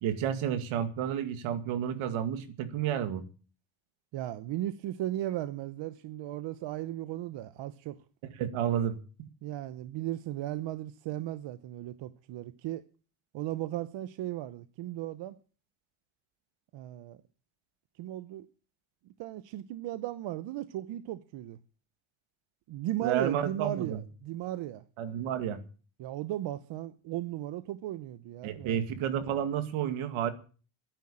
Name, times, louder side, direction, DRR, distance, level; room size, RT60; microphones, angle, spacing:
voice 1, 0.0-3.2 8.4-9.0 23.0-24.0 25.0-25.6 28.4-30.3, right 9 dB, 85° right, 2.3 m, -31 dB
voice 2, 4.1-8.0 9.4-12.9 13.3-15.4 16.7-17.2 18.0-18.5 19.2-21.6 22.7-24.8 26.0-28.8, right 13 dB, 65° right, 0.9 m, -36 dB
12.5 x 10.5 x 8.8 m
cardioid pair, 175°, 48 cm